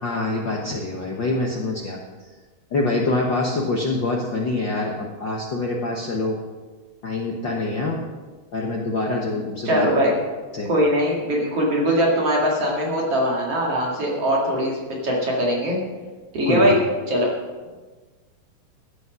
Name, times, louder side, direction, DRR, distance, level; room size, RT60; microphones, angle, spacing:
voice 1, 0.0-2.0 2.7-6.4 7.0-8.0 8.5-9.9 10.5-10.7 16.4-16.7, left 2 dB, 85° left, -1 dB, 1.0 m, -25 dB
voice 2, 9.6-10.1 10.7-15.8 16.3-16.8 17.1-17.3, equal, 45° right, -3 dB, 3.0 m, -21 dB
15.0 x 8.3 x 6.1 m, 1.3 s
omnidirectional pair, 4.0 m